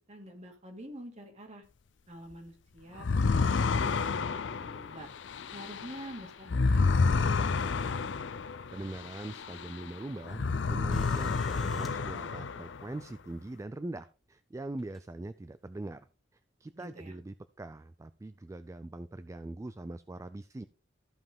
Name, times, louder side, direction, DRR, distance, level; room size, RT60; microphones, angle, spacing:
voice 1, 0.1-1.6 2.1-5.1 5.5-8.1 16.8-17.1, right 1 dB, 35° right, 4 dB, 2.1 m, -48 dB
sound 1, 3.0-9.9 10.2-12.9, left 4 dB, 75° left, 0.5 m, -30 dB
voice 2, 8.7-16.1 16.6-20.6, right 2 dB, 15° right, 13 dB, 0.3 m, -42 dB
sound 2, 10.9-12.0 13.4-13.5 14.8-15.1 16.0-16.1, left 1 dB, ahead, 1.9 m, -52 dB
14.0 x 5.4 x 3.6 m, 0.38 s
head